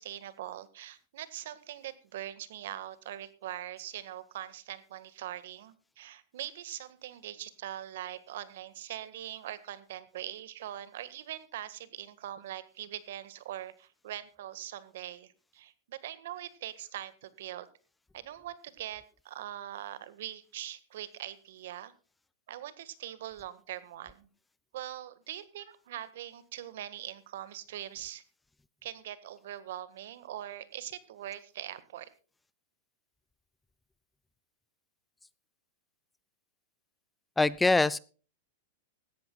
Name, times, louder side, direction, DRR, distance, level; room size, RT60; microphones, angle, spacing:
voice 1, 0.0-17.7 18.1-21.9 22.5-24.3 24.7-28.2 28.8-32.1, right 12 dB, 70° right, 15 dB, 1.7 m, -42 dB
voice 2, 37.4-38.0, left 3 dB, 10° left, 19 dB, 0.5 m, -23 dB
18.0 x 14.0 x 2.4 m, 0.36 s
hypercardioid pair, 130°, 0 cm